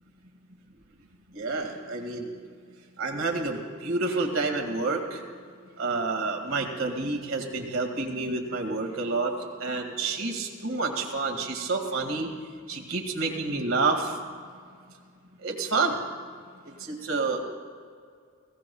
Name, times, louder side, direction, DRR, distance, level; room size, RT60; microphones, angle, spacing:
voice 1, 1.3-2.3 3.0-5.2 5.8-9.3 9.6-12.3 12.7-14.2 15.4-16.0 16.8-17.4, right 3 dB, 85° right, 2 dB, 2.0 m, -29 dB
20.5 x 16.5 x 2.3 m, 2.1 s
head